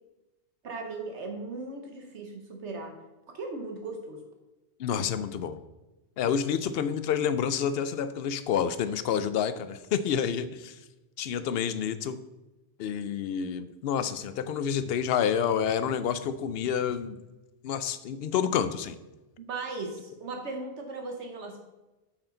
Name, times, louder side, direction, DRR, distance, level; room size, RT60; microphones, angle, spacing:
voice 1, 0.6-2.9 3.3-4.2 19.4-21.6, right 3 dB, 75° right, 3 dB, 1.3 m, -37 dB
voice 2, 4.8-5.6 6.2-10.8 11.2-12.2 12.8-17.2 17.6-19.0, left 8 dB, 65° left, 12 dB, 0.7 m, -28 dB
8.5 x 6.1 x 3.9 m, 1.1 s
omnidirectional pair, 1.2 m